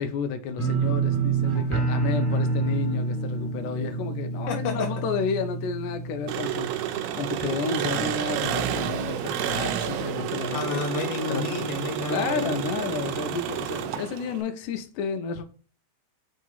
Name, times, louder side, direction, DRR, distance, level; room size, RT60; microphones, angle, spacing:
voice 1, 0.0-10.8 11.3-11.4 12.1-15.4, left 5 dB, 85° left, 2.2 m, -31 dB
sound 1, 0.6-7.4 7.7-8.3 8.6-8.7, right 4 dB, 5° right, 1.5 m, -28 dB
voice 2, 4.5-4.9 10.5-12.6, left 5 dB, 60° left, 1.8 m, -30 dB
Engine, 6.3-14.4, right 10 dB, 80° right, 1.8 m, -30 dB
4.8 x 3.7 x 5.4 m
omnidirectional pair, 3.6 m